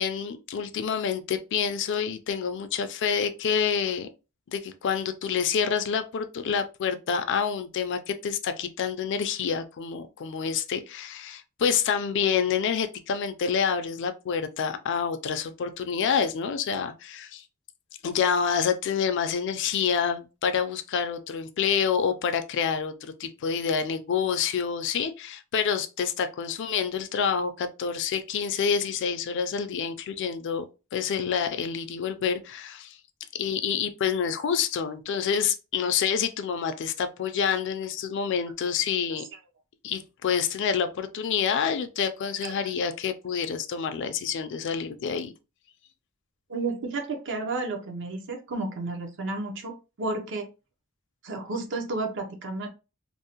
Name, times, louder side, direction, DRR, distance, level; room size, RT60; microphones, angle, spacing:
voice 1, 0.0-4.1 4.5-17.4 18.0-30.6 30.9-33.0 33.3-39.2 39.8-45.3, left 7 dB, 55° left, 0.4 m, -27 dB
voice 2, 46.5-50.5 51.2-52.7, right 3 dB, 55° right, 0.5 m, -32 dB
2.6 x 2.0 x 2.8 m
head